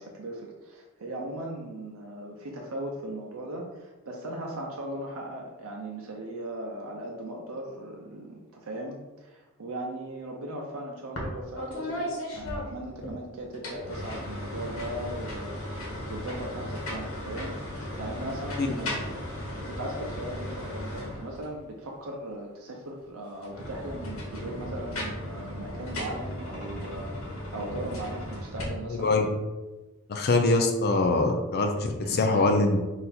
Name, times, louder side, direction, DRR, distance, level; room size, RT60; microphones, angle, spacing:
voice 1, 0.0-12.1 12.3-17.6 18.0-19.1 19.7-27.1 27.5-29.3 32.0-32.5, right 1 dB, 85° right, -1 dB, 0.6 m, -38 dB
sound 1, 11.2-11.3 11.6-13.1 13.5-21.6 23.3-28.6, left 1 dB, 90° left, 1.2 m, -36 dB
voice 2, 28.9-29.3 30.1-32.8, left 2 dB, 50° left, 4 dB, 0.4 m, -23 dB
4.0 x 2.6 x 4.2 m, 1.2 s
head